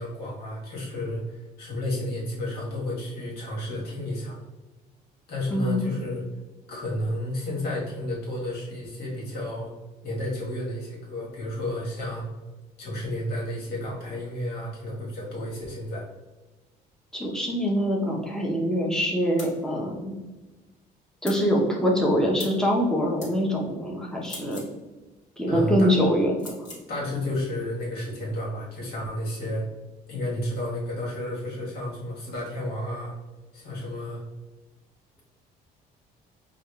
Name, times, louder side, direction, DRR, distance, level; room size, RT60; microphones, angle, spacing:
voice 1, 0.0-4.4 5.3-6.2 6.7-9.7 10.0-12.3 12.8-16.0 25.5-25.9 26.9-29.7 30.1-33.1 33.5-34.2, left 1 dB, 70° left, -3 dB, 1.4 m, -31 dB
voice 2, 5.5-5.9 17.1-20.2 21.2-24.6 25.4-26.7, equal, 5° left, -2 dB, 0.8 m, -24 dB
sound 1, 19.4-19.6 21.2-21.4 22.4-22.6 23.2-23.3 24.2-24.7 26.4-26.8, left 3 dB, 45° left, 1.5 m, -41 dB
4.8 x 2.4 x 2.3 m, 1.2 s
cardioid pair, 110°, 17 cm